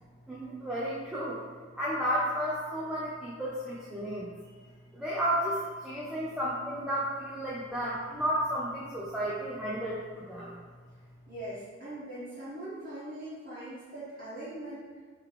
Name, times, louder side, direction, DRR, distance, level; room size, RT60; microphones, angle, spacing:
voice 1, 0.3-1.4 1.8-4.3 4.9-10.6, equal, 5° right, -8 dB, 0.5 m, -32 dB
voice 2, 11.3-14.8, right 1 dB, 50° right, -15 dB, 1.3 m, -41 dB
3.9 x 3.1 x 3.2 m, 1.5 s
head